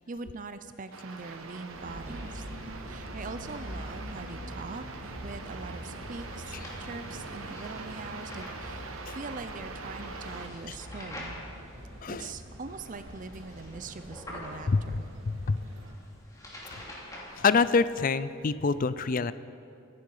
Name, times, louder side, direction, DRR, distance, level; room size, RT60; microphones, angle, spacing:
voice 1, 0.0-2.4 2.9-11.5 12.1-15.1, right 3 dB, 40° right, 10 dB, 0.6 m, -42 dB
sound 1, 0.9-10.5, right 4 dB, 90° right, 1.2 m, -44 dB
sound 2, 1.1-18.1, left 1 dB, 15° left, 2.7 m, -49 dB
sound 3, 1.7-15.9, equal, 75° right, 2.1 m, -44 dB
voice 2, 12.0-12.3 14.7-15.7 16.7-16.8 17.4-19.3, left 4 dB, 40° left, 15 dB, 0.4 m, -27 dB
25.0 x 10.5 x 4.9 m, 2.6 s
head